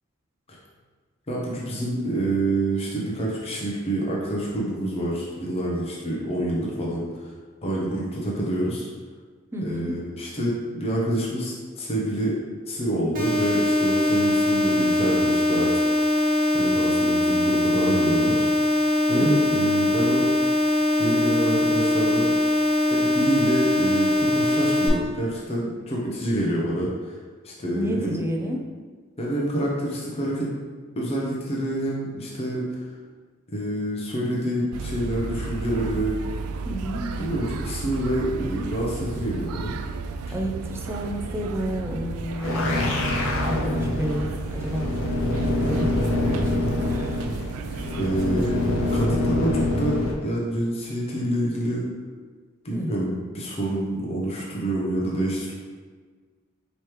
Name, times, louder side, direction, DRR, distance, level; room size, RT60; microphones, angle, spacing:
voice 1, 1.3-7.3 7.6-8.9 9.6-12.4 12.7-15.7 16.1-16.2 16.5-18.5 19.1-20.3 21.0-22.3 22.9-27.2 27.4-28.2 29.2-30.5 31.0-32.8 33.5-36.2 37.2-39.8 48.0-51.9 52.6-55.5, right 1 dB, 30° left, -4 dB, 0.6 m, -27 dB
voice 2, 9.5-10.0 19.2-19.7 27.7-28.6 36.6-37.3 40.3-43.1 43.5-44.9 45.6-47.2 52.7-53.0, equal, 10° right, 1 dB, 0.4 m, -30 dB
sound 1, 13.1-24.9, left 1 dB, 40° right, 0.8 m, -22 dB
sound 2, 34.7-49.1, right 4 dB, 85° right, 0.3 m, -33 dB
sound 3, 42.3-50.1, left 1 dB, 65° left, 0.6 m, -25 dB
4.8 x 3.1 x 3.0 m, 1.5 s
head